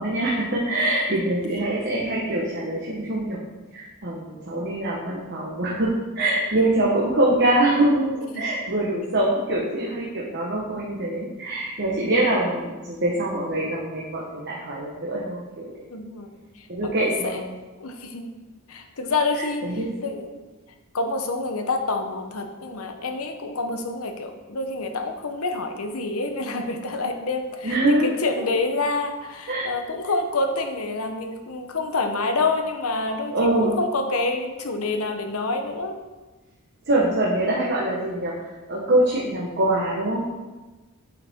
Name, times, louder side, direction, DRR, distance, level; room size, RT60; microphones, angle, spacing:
voice 1, 0.0-3.4 3.7-8.1 8.3-15.7 16.7-17.4 19.4-20.1 27.6-28.1 28.4-28.5 29.5-29.7 33.3-33.8 36.9-40.3, right 1 dB, 50° right, -5 dB, 1.1 m, -24 dB
voice 2, 15.9-16.3 16.6-17.4 17.8-18.4 18.7-19.6 20.0-20.3 20.9-36.0, left 3 dB, 75° left, 5 dB, 0.8 m, -27 dB
8.1 x 5.4 x 3.6 m, 1.2 s
head